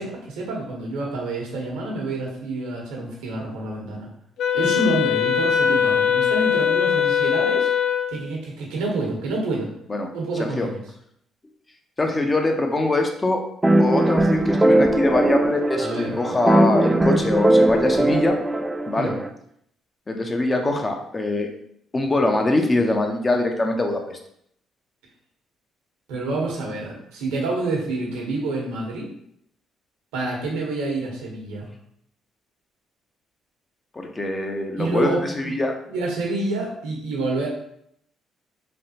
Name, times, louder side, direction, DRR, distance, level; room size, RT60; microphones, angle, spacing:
voice 1, 0.0-4.1 4.5-7.7 8.1-9.7 10.1-10.8 15.8-16.2 19.0-19.1 26.1-29.1 30.1-31.7 34.8-35.5 35.9-37.5, right 2 dB, 85° right, -2 dB, 0.9 m, -28 dB
Wind instrument woodwind instrument, 4.4-8.2, left 8 dB, 70° left, 0.4 m, -21 dB
voice 2, 12.0-13.4 13.8-18.4 18.9-19.1 20.1-21.5 21.9-24.2 33.9-35.7, left 2 dB, 25° left, 3 dB, 0.6 m, -23 dB
sound 1, 13.6-19.3, right 1 dB, 20° right, 0.3 m, -20 dB
3.3 x 2.4 x 2.8 m, 0.70 s
supercardioid pair, 65°, 0 cm